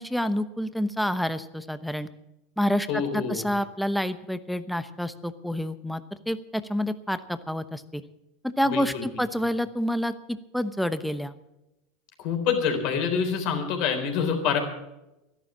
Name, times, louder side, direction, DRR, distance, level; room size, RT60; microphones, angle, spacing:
voice 1, 0.0-2.1 2.6-6.0 6.3-8.0 8.6-10.1 10.5-11.3, equal, ahead, 12 dB, 0.9 m, -28 dB
voice 2, 2.9-3.5 8.7-9.1 12.2-14.6, left 6 dB, 60° left, 4 dB, 3.9 m, -26 dB
13.0 x 11.5 x 7.4 m, 0.93 s
hypercardioid pair, 105°, 0 cm